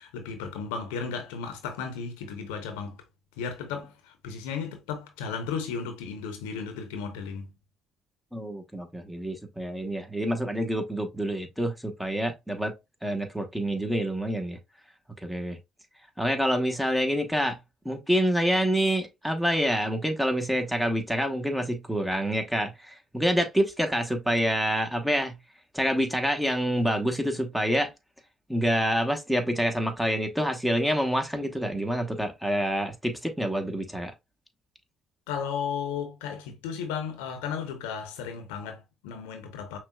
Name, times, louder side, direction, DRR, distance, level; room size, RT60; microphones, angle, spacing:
voice 1, 0.0-3.0 3.4-7.5 35.3-39.8, left 6 dB, 85° left, 0.7 m, -34 dB
voice 2, 8.3-12.7 13.0-14.6 15.2-15.6 16.2-17.6 17.8-25.4 25.7-27.9 28.5-34.1, equal, 5° right, 1.0 m, -27 dB
5.7 x 2.3 x 2.2 m
hypercardioid pair, 60°, 0 cm